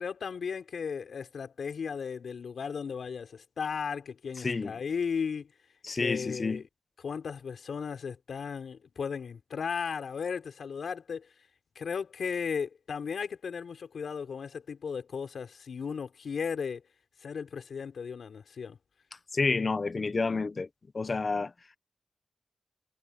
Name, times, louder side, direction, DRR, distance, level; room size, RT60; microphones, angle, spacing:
voice 1, 0.0-5.5 5.9-6.7 7.0-11.3 11.7-16.8 17.2-18.8, left 6 dB, 90° left, 4.6 m, -35 dB
voice 2, 4.4-4.8 5.8-6.6 19.3-20.7 20.9-21.5, left 4 dB, 45° left, 0.6 m, -29 dB
wide cardioid pair, 100°, 0 cm